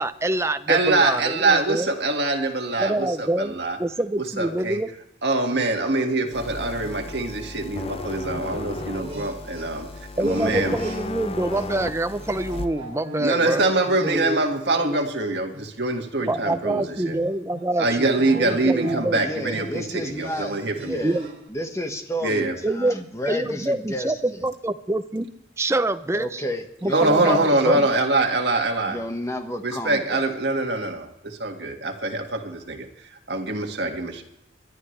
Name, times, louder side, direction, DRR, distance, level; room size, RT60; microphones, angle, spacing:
voice 1, 0.0-1.9 2.8-4.9 10.2-13.7 14.0-14.4 16.3-19.2 21.0-21.3 22.6-23.0 23.3-25.3 25.6-26.4 26.8-27.8, right 2 dB, 15° right, 11 dB, 0.6 m, -26 dB
voice 2, 0.7-3.8 4.2-4.8 5.2-10.8 13.2-17.2 17.8-21.0 22.2-22.5 26.9-29.0 29.6-34.2, right 2 dB, 65° right, 2 dB, 1.9 m, -24 dB
sound 1, 5.5-11.2 11.5-21.5, right 1 dB, 35° right, 2.8 m, -42 dB
sound 2, 6.3-12.7, left 2 dB, 30° left, 0.6 m, -34 dB
voice 3, 19.1-20.5 20.8-24.5 26.1-28.1 28.8-30.3, equal, 15° left, 5 dB, 1.4 m, -31 dB
23.5 x 11.5 x 3.3 m, 0.84 s
head